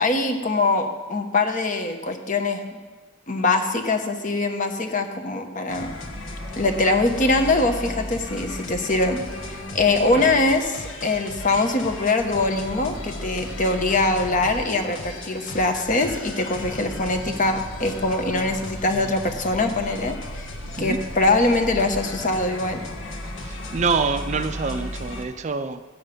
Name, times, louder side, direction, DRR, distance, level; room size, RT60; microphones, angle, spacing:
voice 1, 0.0-2.6 3.3-5.9 6.6-9.2 9.5-20.5 20.8-22.8, left 2 dB, 40° left, 6 dB, 1.0 m, -23 dB
sound 1, 5.7-25.2, left 1 dB, 70° left, 1.4 m, -35 dB
voice 2, 23.4-25.8, right 4 dB, 35° right, 10 dB, 0.5 m, -26 dB
14.0 x 8.8 x 5.2 m, 1.4 s
head